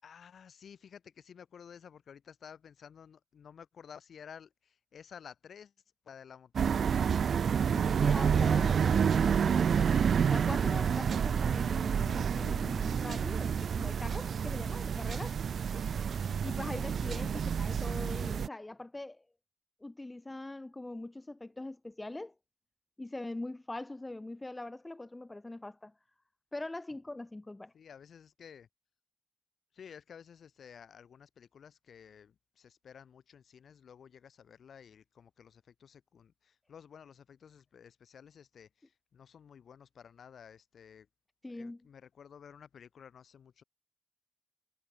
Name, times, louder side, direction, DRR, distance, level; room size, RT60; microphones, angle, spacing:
voice 1, 0.0-5.7 6.0-7.1 8.5-9.1 15.1-15.4 16.1-16.3 27.7-28.7 29.7-41.1 41.5-43.6, left 7 dB, 70° left, 6.1 m, -53 dB
sound 1, 6.6-18.5, right 7 dB, 65° right, 1.6 m, -29 dB
voice 2, 7.6-10.0 10.3-15.4 16.4-19.2 19.8-22.3 23.0-25.9 26.5-27.7 41.4-41.9, left 2 dB, 15° left, 2.4 m, -42 dB
wide cardioid pair, 165°, 0 cm